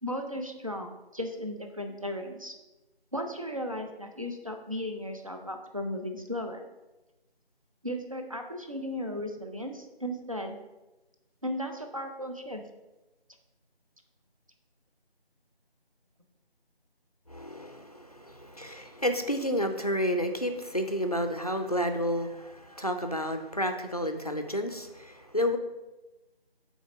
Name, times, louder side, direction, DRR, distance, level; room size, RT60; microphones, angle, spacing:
voice 1, 0.0-2.5 3.1-6.6 7.8-10.6 11.4-12.6, equal, 35° right, 4 dB, 0.6 m, -35 dB
voice 2, 17.3-25.6, equal, 40° left, 7 dB, 0.5 m, -30 dB
5.5 x 4.3 x 6.0 m, 1.1 s
figure-of-eight pair, 165°, 31 cm